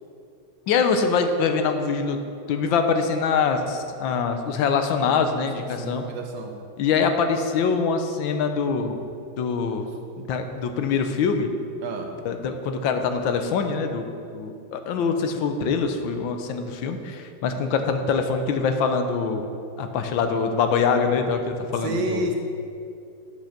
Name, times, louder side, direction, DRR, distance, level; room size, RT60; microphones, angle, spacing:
voice 1, 0.7-2.2 2.5-6.0 6.8-9.0 9.4-11.5 12.2-14.0 14.3-19.4 19.8-22.3, left 5 dB, 90° left, 6 dB, 1.5 m, -24 dB
voice 2, 5.5-6.6 11.8-12.1 21.8-22.3, right 1 dB, 75° right, 3 dB, 1.6 m, -29 dB
8.3 x 6.2 x 5.8 m, 2.4 s
omnidirectional pair, 2.1 m